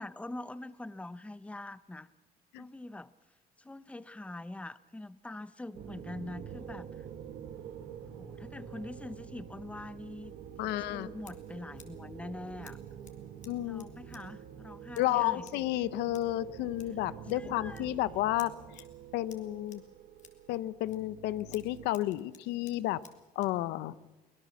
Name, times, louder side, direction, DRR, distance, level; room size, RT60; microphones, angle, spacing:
voice 1, 0.0-2.1 2.6-3.1 3.6-7.1 8.1-10.3 10.6-12.8 13.6-15.4 17.4-17.8, left 2 dB, 5° left, 16 dB, 0.7 m, -44 dB
sound 1, 5.7-21.9, right 8 dB, 75° right, 1.8 m, -47 dB
voice 2, 10.6-11.1 13.5-13.9 15.0-18.8 19.1-19.8 20.5-23.0 23.4-24.0, left 15 dB, 90° left, 17 dB, 0.7 m, -32 dB
Scissors, 10.6-23.6, left 7 dB, 45° left, 2.8 m, -60 dB
24.0 x 17.5 x 7.2 m, 1.2 s
cardioid pair, 110°, 17 cm